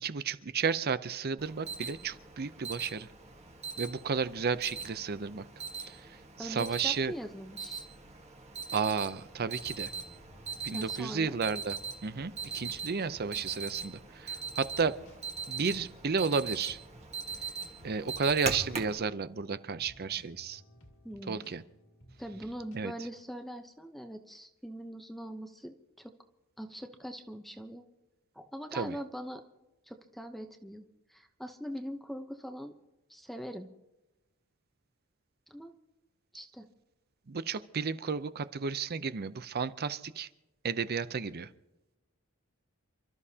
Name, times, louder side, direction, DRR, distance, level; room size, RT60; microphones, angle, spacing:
voice 1, 0.0-3.1 3.8-5.5 5.8-7.1 8.7-9.9 10.6-14.9 15.5-16.8 17.8-20.6 21.3-21.6 22.7-22.9 28.7-29.0 37.3-40.3 40.6-41.5, right 5 dB, 50° right, 14 dB, 0.6 m, -32 dB
Alarm, 1.4-19.0, right 5 dB, 30° right, 1.6 m, -41 dB
voice 2, 6.4-7.9 10.7-11.4 21.0-21.5 22.2-26.1 26.6-27.9 28.3-29.4 29.9-30.8 31.1-32.7 33.1-33.7 35.5-35.7 36.3-36.7, equal, ahead, 5 dB, 0.8 m, -42 dB
sound 1, 9.3-22.8, equal, 65° left, 2.3 m, -58 dB
28.5 x 13.0 x 2.9 m, 0.98 s
head